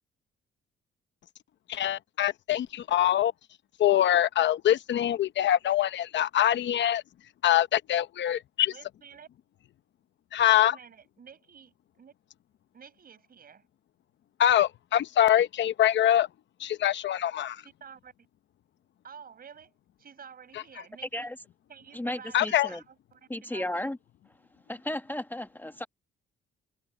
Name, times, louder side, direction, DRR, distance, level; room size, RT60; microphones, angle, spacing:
voice 1, 1.7-3.3 3.8-7.0 7.4-8.7 10.3-10.7 14.4-16.3 16.6-17.6 22.3-22.7, left 11 dB, 65° left, 0.8 m, -24 dB
voice 2, 8.7-9.3 10.5-12.1 12.7-13.7 17.6-18.1 19.0-19.7 20.0-21.3 21.7-23.7, right 7 dB, 50° right, 5.5 m, -50 dB
voice 3, 21.9-22.8 23.3-24.0 24.7-25.9, left 1 dB, 10° left, 1.3 m, -34 dB
cardioid pair, 90°, 20 cm